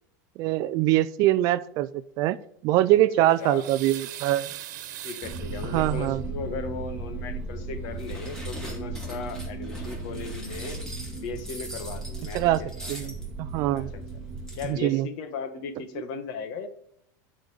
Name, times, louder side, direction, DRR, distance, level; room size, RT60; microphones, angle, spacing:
voice 1, 0.4-1.9 2.2-2.4 2.6-4.5 5.7-6.2 12.3-12.6 12.9-13.1 13.4-13.9 14.7-15.1, right 14 dB, 40° right, 16 dB, 0.4 m, -23 dB
voice 2, 3.0-3.7 5.0-10.8 11.2-13.1 13.7-14.2 14.6-16.7, left 5 dB, 50° left, 9 dB, 1.3 m, -37 dB
sound 1, 3.0-6.3 7.5-7.6 7.9-8.0, right 12 dB, 80° right, 1.2 m, -41 dB
sound 2, 5.2-14.7, right 3 dB, 10° right, 1.5 m, -36 dB
sound 3, 8.0-13.3 13.8-13.9 14.1-14.2 14.4-14.7, right 1 dB, 5° left, 2.6 m, -42 dB
11.5 x 5.1 x 6.8 m, 0.70 s
supercardioid pair, 170°, 10 cm